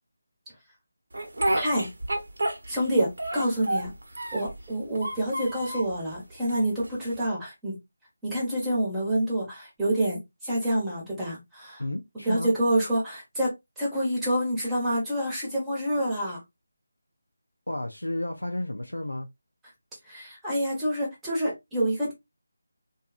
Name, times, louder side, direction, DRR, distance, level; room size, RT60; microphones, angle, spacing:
Speech, 1.1-2.9 3.2-4.6 4.9-5.9 6.5-7.3, right 1 dB, 60° right, 0.7 m, -30 dB
voice 1, 1.5-1.9 2.7-3.9 4.3-7.8 8.2-11.8 12.2-16.4 20.1-22.1, right 1 dB, 5° right, 1.0 m, -27 dB
voice 2, 11.8-12.5 17.7-19.3, left 1 dB, 80° left, 0.4 m, -32 dB
2.6 x 2.3 x 2.3 m
figure-of-eight pair, 160°, 0 cm